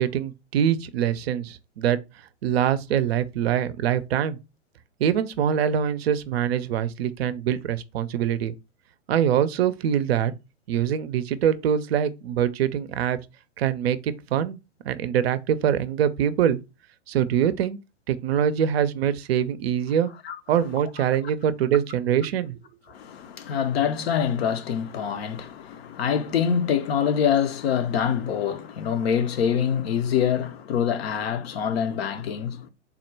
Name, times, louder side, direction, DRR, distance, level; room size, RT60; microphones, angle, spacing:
voice 1, 0.0-2.0 2.4-4.4 5.0-8.6 9.1-10.3 10.7-13.2 13.6-14.6 14.8-16.6 17.1-17.8 18.1-20.1 20.5-22.6, right 9 dB, 55° right, 0.5 m, -24 dB
voice 2, 22.9-32.7, left 8 dB, 55° left, 0.6 m, -25 dB
3.6 x 2.1 x 4.3 m
hypercardioid pair, 120°, 37 cm